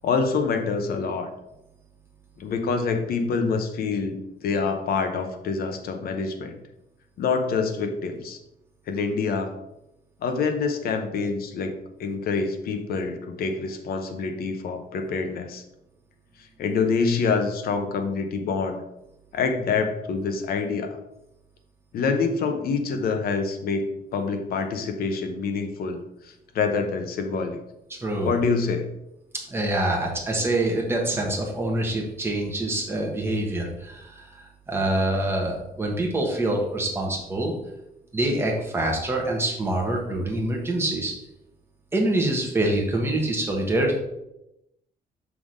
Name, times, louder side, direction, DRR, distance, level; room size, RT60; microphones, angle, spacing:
voice 1, 0.0-1.3 2.4-6.6 7.2-8.4 8.9-9.6 10.2-15.6 16.4-18.8 19.3-21.0 21.9-27.6 28.2-28.9, left 4 dB, 65° left, 6 dB, 0.9 m, -26 dB
voice 2, 27.9-28.3 29.5-37.5 38.1-41.1 41.9-44.0, right 1 dB, 15° right, 0 dB, 1.3 m, -25 dB
6.0 x 3.7 x 4.9 m, 0.88 s
cardioid pair, 150°, 16 cm